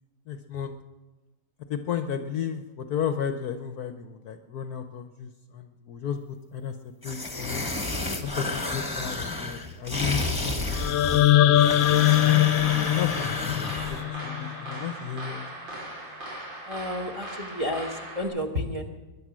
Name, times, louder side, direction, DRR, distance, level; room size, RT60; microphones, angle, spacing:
voice 1, 0.3-0.7 1.7-6.8 7.0-7.6 8.2-12.0 12.8-15.5, left 8 dB, 60° left, 8 dB, 1.1 m, -33 dB
sound 1, 7.0-14.0, left 2 dB, 15° left, 1.2 m, -31 dB
sound 2, 10.7-14.8, left 14 dB, 90° left, 1.5 m, -22 dB
sound 3, 12.1-18.2, right 1 dB, 70° right, 4.2 m, -39 dB
voice 2, 16.6-18.9, left 1 dB, 20° right, 4 dB, 1.1 m, -31 dB
22.0 x 10.5 x 6.2 m, 1.2 s
omnidirectional pair, 2.1 m